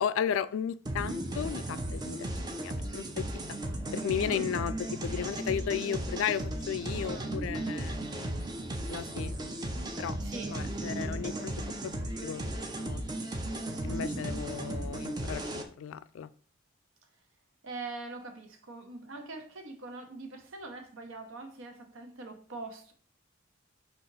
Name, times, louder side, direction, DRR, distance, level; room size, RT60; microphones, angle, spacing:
voice 1, 0.0-3.0 3.9-4.7 5.0-8.2 8.9-9.3 10.0-10.2 10.5-11.7 12.2-12.5 12.8-13.0 13.8-16.3, left 8 dB, 75° left, 14 dB, 0.3 m, -34 dB
sound 1, 0.8-15.6, right 1 dB, 20° right, 0.5 m, -35 dB
voice 2, 6.9-7.3 10.2-10.7 13.8-14.5 17.6-22.9, right 3 dB, 75° right, 5 dB, 0.9 m, -43 dB
5.1 x 2.5 x 3.9 m, 0.42 s
head